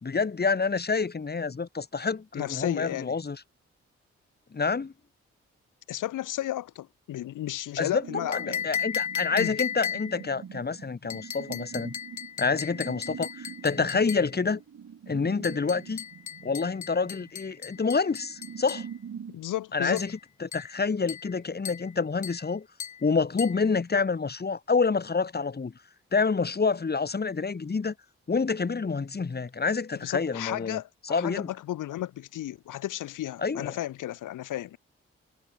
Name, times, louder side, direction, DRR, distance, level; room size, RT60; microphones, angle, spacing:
voice 1, 0.0-3.4 4.5-4.9 7.8-8.0 8.3-11.9 12.4-14.6 15.1-16.0 16.4-18.9 19.7-20.1 20.4-22.7 23.0-25.7 26.1-27.9 28.3-31.5 33.4-33.7, left 4 dB, 30° left, 1.3 m, -28 dB
voice 2, 2.3-3.2 5.9-8.7 9.3-9.5 19.3-20.0 30.0-34.8, left 13 dB, 80° left, 1.5 m, -33 dB
sound 1, 7.9-19.4, right 7 dB, 65° right, 4.0 m, -44 dB
sound 2, 8.3-10.3 11.1-14.3 15.4-18.9 20.0-20.2 20.5-20.8 21.1-21.4 21.6-21.9 22.2-22.5 22.8-23.0 23.4-23.6, left 8 dB, 65° left, 3.3 m, -36 dB
supercardioid pair, 40°, 31 cm